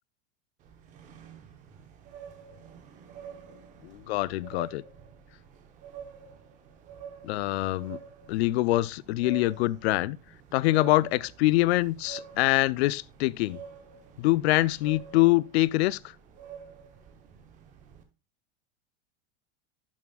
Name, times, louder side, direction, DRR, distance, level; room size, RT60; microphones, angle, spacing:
sound 1, 0.6-18.0, right 7 dB, 20° right, 0.9 m, -48 dB
voice 1, 3.8-4.8 7.2-8.0 8.3-10.2 10.5-13.6 14.2-16.0, left 18 dB, 65° left, 0.5 m, -24 dB
11.0 x 7.1 x 2.3 m
supercardioid pair, 175°, 35 cm